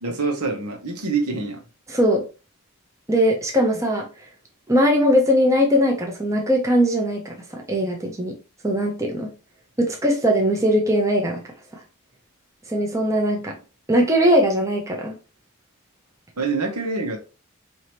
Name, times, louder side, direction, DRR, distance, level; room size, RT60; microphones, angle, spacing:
voice 1, 0.0-1.6 16.4-17.2, right 4 dB, 85° right, 1 dB, 1.2 m, -25 dB
voice 2, 1.9-2.2 3.1-4.1 4.7-8.4 8.6-9.3 9.8-11.4 12.7-13.5 13.9-15.2, equal, 15° right, 0 dB, 0.8 m, -20 dB
4.7 x 2.9 x 3.0 m, 0.32 s
head